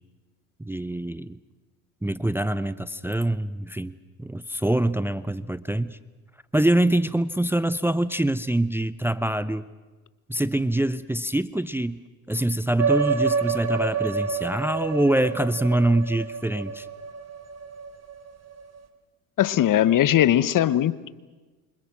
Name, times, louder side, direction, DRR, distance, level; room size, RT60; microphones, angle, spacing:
voice 1, 0.6-1.4 2.0-6.0 6.5-9.7 10.3-16.9, right 1 dB, 5° right, 15 dB, 0.8 m, -25 dB
sound 1, 12.8-18.8, right 5 dB, 35° right, 3.6 m, -28 dB
voice 2, 19.4-21.1, left 11 dB, 45° left, 16 dB, 1.2 m, -20 dB
28.0 x 25.5 x 6.1 m, 1.2 s
hypercardioid pair, 75°, 44 cm